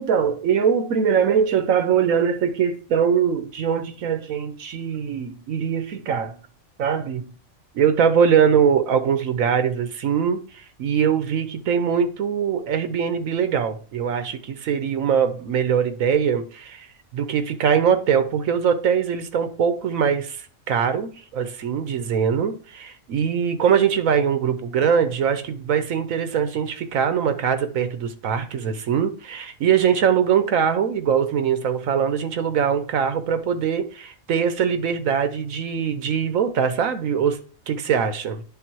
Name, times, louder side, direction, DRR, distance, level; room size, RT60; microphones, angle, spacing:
voice 1, 0.0-6.4 6.8-7.3 7.7-16.9 17.1-37.4 37.7-38.4, right 7 dB, 85° right, 1.3 m, -22 dB
10.0 x 3.5 x 4.6 m
omnidirectional pair, 1.4 m